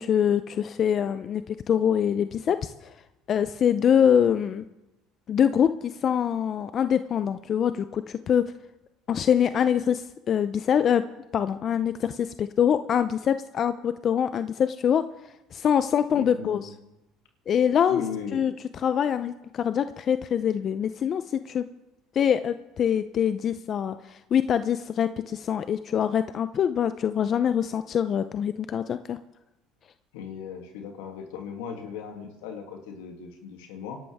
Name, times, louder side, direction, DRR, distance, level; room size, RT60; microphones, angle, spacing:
voice 1, 0.0-2.7 3.3-4.6 5.3-8.4 9.1-11.0 11.3-15.0 15.5-16.7 17.5-18.0 18.3-18.5 18.8-21.6 22.1-29.2, left 8 dB, 45° left, 11 dB, 0.6 m, -24 dB
voice 2, 16.1-16.7 17.9-18.4 30.1-34.0, left 6 dB, 85° left, 3 dB, 2.7 m, -37 dB
26.0 x 12.0 x 3.6 m, 0.97 s
supercardioid pair, 85°, 0 cm